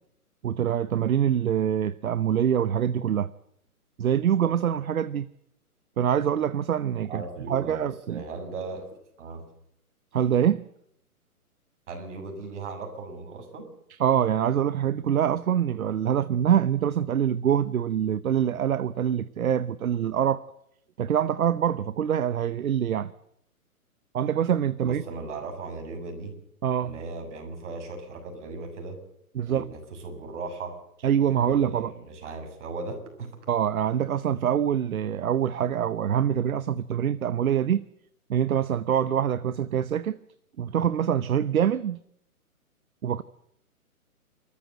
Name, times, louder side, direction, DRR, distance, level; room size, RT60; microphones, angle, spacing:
voice 1, 0.4-3.3 4.0-5.3 6.0-8.2 10.1-10.7 14.0-20.4 21.0-23.1 24.1-25.0 26.6-26.9 29.3-29.7 31.0-31.9 33.5-37.8 38.3-40.2 40.6-42.0 43.0-43.2, right 9 dB, 65° right, 0.9 m, -25 dB
voice 2, 7.1-8.9 9.2-9.4 11.9-13.7 24.8-26.3 26.8-29.0 29.5-30.8 31.2-33.4, right 3 dB, 50° right, 7.1 m, -37 dB
28.5 x 14.0 x 7.8 m
hypercardioid pair, 145°, 45 cm